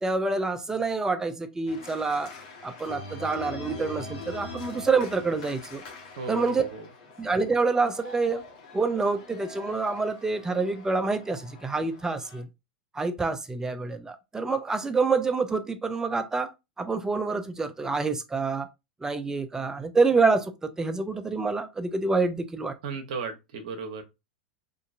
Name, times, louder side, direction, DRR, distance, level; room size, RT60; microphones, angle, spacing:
voice 1, 0.0-2.3 2.6-5.8 6.3-6.6 7.2-8.4 8.7-12.5 12.9-16.5 16.8-18.7 19.0-22.7, right 4 dB, 10° right, 0.6 m, -27 dB
Organ, 1.7-12.4, left 3 dB, 60° left, 1.3 m, -43 dB
voice 2, 6.2-6.8 22.8-24.0, right 5 dB, 65° right, 0.9 m, -35 dB
3.7 x 2.7 x 2.5 m
hypercardioid pair, 95°, 5 cm